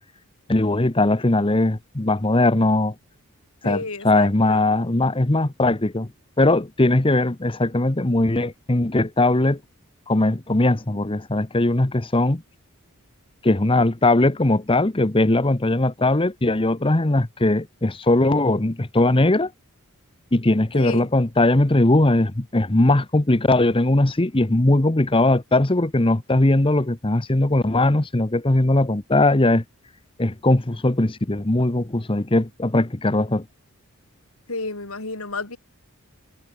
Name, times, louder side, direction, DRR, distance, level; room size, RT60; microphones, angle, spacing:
voice 1, 0.5-2.9 3.6-6.1 6.4-9.6 10.1-12.4 13.4-19.5 20.3-29.6 30.2-33.4, left 2 dB, 25° left, 1.0 m, -20 dB
voice 2, 3.6-4.6 20.7-21.1 34.5-35.6, left 3 dB, 75° left, 4.2 m, -31 dB
head